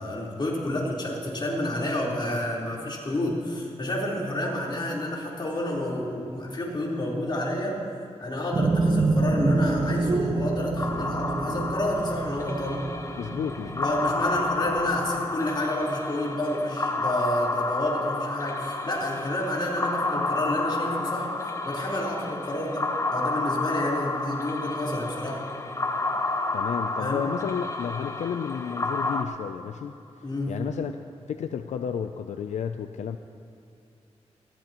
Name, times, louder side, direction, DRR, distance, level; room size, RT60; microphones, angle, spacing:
voice 1, 0.0-7.8 8.2-12.8 13.8-21.3 21.6-25.4 27.0-27.2 30.2-30.5, left 1 dB, 40° left, -4 dB, 3.9 m, -29 dB
sound 1, 8.5-15.1, right 2 dB, 45° right, 1.1 m, -27 dB
sound 2, 10.8-29.2, left 2 dB, 25° left, 1.0 m, -30 dB
voice 2, 13.2-13.9 26.5-29.9 30.5-30.9 31.3-33.2, left 7 dB, 85° left, 8 dB, 0.4 m, -32 dB
20.0 x 16.0 x 3.0 m, 2.6 s
cardioid pair, 70°, 12 cm